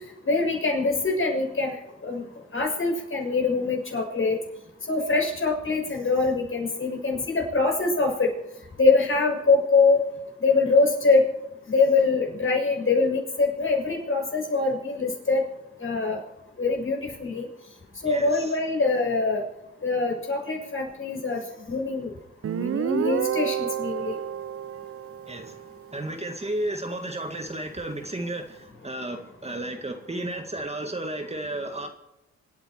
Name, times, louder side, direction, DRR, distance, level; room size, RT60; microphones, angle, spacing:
voice 1, 0.2-2.2 2.5-4.4 4.9-8.3 8.8-10.0 10.4-11.3 11.7-15.4 15.8-16.2 16.6-17.5 18.0-19.4 19.8-22.1 22.5-24.2, left 3 dB, 45° left, 1 dB, 6.7 m, -24 dB
voice 2, 18.0-18.6 25.2-25.6 25.9-31.9, right 1 dB, 20° right, 5 dB, 1.9 m, -33 dB
Guitar, 22.4-25.9, right 9 dB, 50° right, 0.6 m, -29 dB
27.0 x 9.4 x 4.6 m, 0.90 s
cardioid pair, 65°, 30 cm